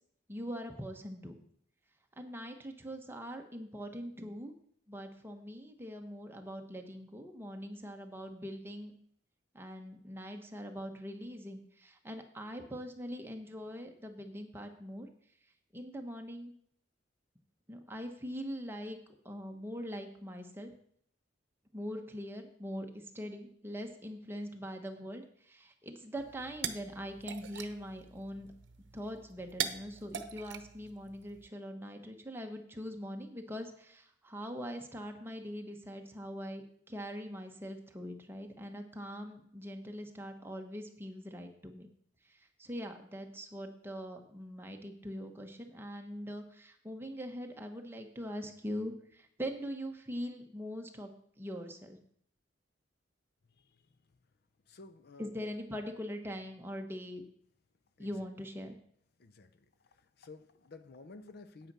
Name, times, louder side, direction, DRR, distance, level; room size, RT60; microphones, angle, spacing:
voice 1, 0.3-1.4 2.2-4.5 4.9-8.9 9.5-15.1 15.7-16.5 17.7-19.0 19.2-20.7 21.7-28.5 28.9-41.9 42.2-51.1 51.4-52.0 55.2-57.2 58.0-58.7, equal, 10° right, 3 dB, 1.2 m, -42 dB
sound 1, 26.2-31.5, right 8 dB, 70° right, 0.8 m, -42 dB
voice 2, 54.7-55.5 58.0-58.1 59.2-59.5 60.2-61.7, left 3 dB, 55° left, 12 dB, 0.6 m, -52 dB
9.2 x 8.6 x 5.5 m, 0.66 s
head